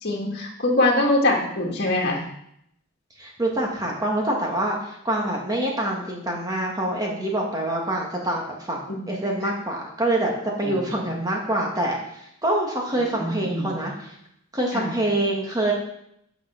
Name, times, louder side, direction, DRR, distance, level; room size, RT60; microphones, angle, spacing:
voice 1, 0.0-2.2 9.0-9.1 10.6-11.3 13.1-13.8 14.7-14.9, left 2 dB, 50° left, -1 dB, 2.1 m, -24 dB
voice 2, 3.2-8.8 9.1-14.2 14.5-15.7, right 1 dB, 15° right, -1 dB, 2.0 m, -26 dB
9.0 x 6.1 x 5.9 m, 0.74 s
head